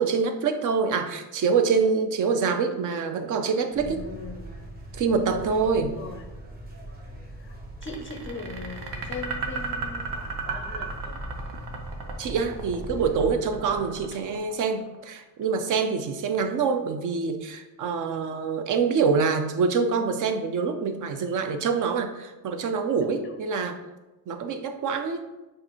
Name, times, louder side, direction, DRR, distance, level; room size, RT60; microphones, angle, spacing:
voice 1, 0.0-4.0 4.9-5.9 12.2-23.8 24.3-25.2, right 5 dB, 50° right, 7 dB, 0.6 m, -25 dB
sound 1, 3.7-13.3, right 1 dB, 25° right, 1.0 m, -40 dB
voice 2, 3.8-4.6 5.7-6.4 7.3-7.5 7.8-11.2 14.1-14.2 23.0-23.4, left 3 dB, 30° left, 4 dB, 0.5 m, -40 dB
sound 2, 7.8-15.0, right 4 dB, 85° right, 0.8 m, -35 dB
6.4 x 2.5 x 3.0 m, 1.1 s
cardioid pair, 130°, 40 cm